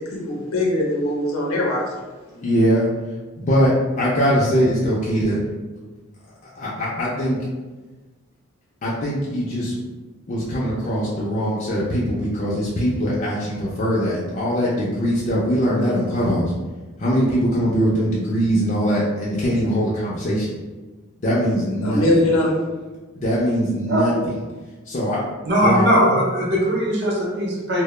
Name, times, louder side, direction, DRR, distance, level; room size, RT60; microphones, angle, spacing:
voice 1, 0.0-1.8 21.8-22.6, left 1 dB, 80° left, -3 dB, 0.6 m, -21 dB
voice 2, 2.4-2.9 3.4-5.4 6.6-7.4 8.8-9.7 10.3-16.5 17.0-20.5 21.2-22.2 23.2-24.1 24.9-25.2 25.6-25.9, equal, 35° left, -7 dB, 0.3 m, -21 dB
voice 3, 25.4-27.8, equal, 50° right, -4 dB, 0.5 m, -19 dB
2.1 x 2.0 x 3.0 m, 1.2 s
head